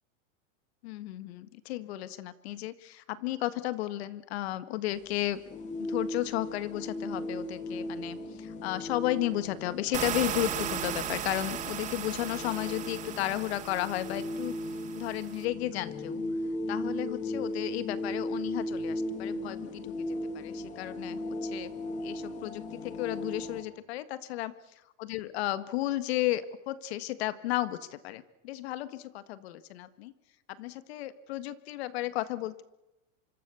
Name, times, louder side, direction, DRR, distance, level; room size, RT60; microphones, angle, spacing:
voice 1, 0.8-5.4 5.8-14.6 15.0-16.2 16.7-21.7 22.0-24.5 25.0-30.1 30.5-32.6, left 15 dB, 55° left, 15 dB, 1.7 m, -34 dB
sound 1, 4.9-23.6, left 1 dB, 20° left, 2.1 m, -37 dB
sound 2, 9.9-15.4, right 11 dB, 20° right, 1.3 m, -37 dB
25.5 x 25.5 x 7.0 m, 0.96 s
supercardioid pair, 170°, 39 cm